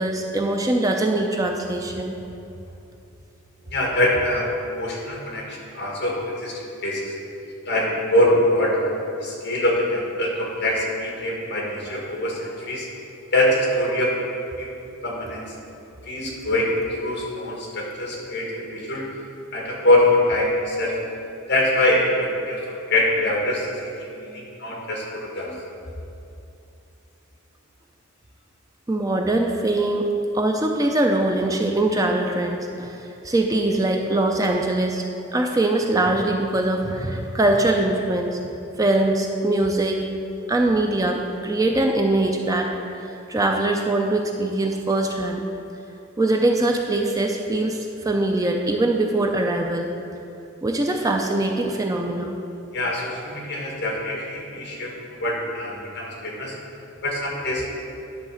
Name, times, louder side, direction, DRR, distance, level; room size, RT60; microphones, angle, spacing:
voice 1, 0.0-2.2 25.5-25.6 28.9-35.0 35.3-40.0 40.5-45.4 46.2-49.9 50.6-52.4, right 2 dB, 15° right, 2 dB, 0.4 m, -22 dB
voice 2, 3.7-7.1 7.7-8.8 9.2-12.9 13.3-14.1 14.6-14.7 15.0-15.5 16.0-16.7 17.0-19.1 19.5-21.0 21.5-23.9 24.2-25.5 52.7-54.9 55.2-56.6 57.0-57.7, left 1 dB, 55° left, -3 dB, 1.8 m, -23 dB
10.5 x 4.0 x 6.4 m, 2.7 s
head